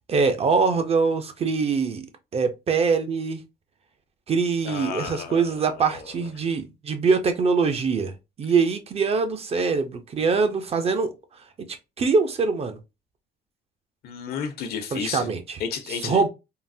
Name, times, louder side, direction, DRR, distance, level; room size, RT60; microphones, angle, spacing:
voice 1, 0.1-2.1 2.3-3.4 4.3-8.1 8.4-11.1 12.0-12.8 14.9-15.6 16.0-16.3, right 5 dB, 35° right, 0.6 m, -23 dB
voice 2, 4.6-6.1 14.0-15.3 15.6-16.2, left 7 dB, 70° left, 0.9 m, -32 dB
3.7 x 2.0 x 2.6 m
cardioid pair, 110°, 17 cm